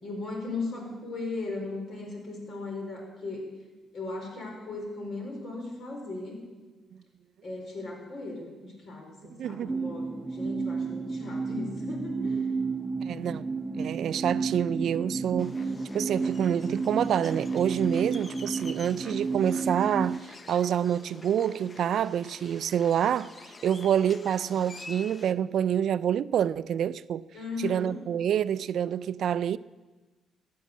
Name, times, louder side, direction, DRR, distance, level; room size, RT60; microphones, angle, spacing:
voice 1, 0.0-3.5 3.9-6.4 7.4-12.5 27.3-27.9, left 3 dB, 60° left, 4.7 m, -37 dB
voice 2, 9.4-9.7 13.0-13.5 13.8-15.6 15.9-20.2 20.5-23.3 23.6-27.2 27.6-29.6, right 9 dB, 70° right, 0.4 m, -27 dB
sound 1, 9.7-20.2, right 4 dB, 20° right, 0.5 m, -32 dB
sound 2, 15.4-25.3, left 3 dB, 30° left, 0.8 m, -47 dB
14.0 x 8.6 x 8.2 m
cardioid pair, 90°, 0 cm